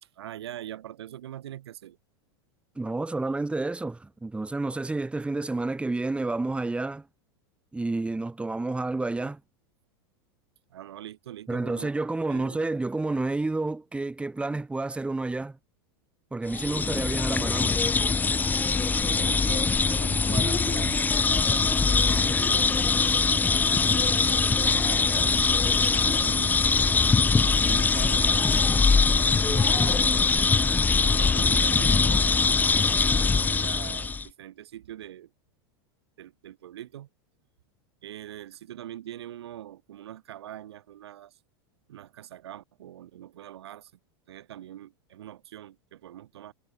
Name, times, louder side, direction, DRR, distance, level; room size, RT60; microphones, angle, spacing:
voice 1, 0.0-2.0 10.7-11.9 12.3-12.7 18.8-22.9 23.8-26.7 27.4-30.3 31.1-32.3 33.1-35.3 36.2-37.1 38.0-41.4 41.9-43.9 44.3-46.5, right 12 dB, 85° right, 4.0 m, -42 dB
voice 2, 2.7-7.0 7.7-9.4 11.5-15.6 16.3-17.8, right 2 dB, 10° right, 3.4 m, -30 dB
sound 1, 16.5-34.3, left 4 dB, 15° left, 0.9 m, -22 dB
supercardioid pair, 120°, 13 cm